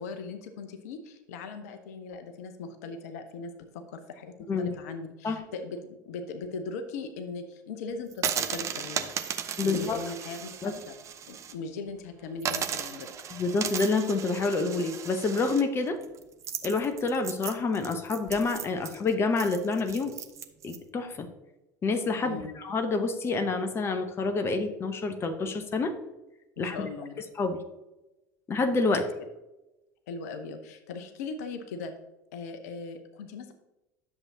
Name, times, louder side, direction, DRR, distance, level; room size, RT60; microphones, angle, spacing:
voice 1, 0.0-9.2 9.6-11.0 11.3-13.1 22.2-22.6 26.6-27.2 30.1-31.9 32.3-33.5, left 4 dB, 60° left, 7 dB, 0.8 m, -39 dB
sound 1, 8.1-11.5 11.9-12.0 12.4-20.8, right 8 dB, 30° right, 0.7 m, -36 dB
voice 2, 9.6-10.0 10.6-10.7 13.3-16.0 16.6-20.1 20.6-21.3 21.8-25.9 26.6-26.9 27.4-27.6 28.5-29.1, left 3 dB, 25° left, 8 dB, 0.9 m, -28 dB
11.0 x 7.2 x 2.8 m, 0.99 s
figure-of-eight pair, 70°, 10 cm